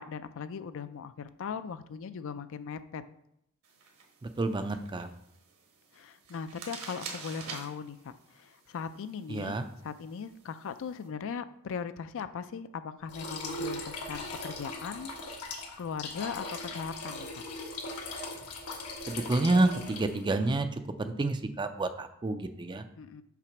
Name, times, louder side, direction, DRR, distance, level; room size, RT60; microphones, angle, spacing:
voice 1, 0.0-3.0 5.9-15.1 15.8-17.4 23.0-23.2, left 6 dB, 60° left, 12 dB, 0.4 m, -39 dB
sound 1, 3.6-11.1, right 5 dB, 75° right, 1.4 m, -48 dB
voice 2, 4.4-5.1 9.3-9.7 19.1-22.8, right 2 dB, 20° right, 9 dB, 0.4 m, -29 dB
sound 2, 13.1-20.3, left 2 dB, 90° left, 1.3 m, -39 dB
5.9 x 4.2 x 5.9 m, 0.77 s
head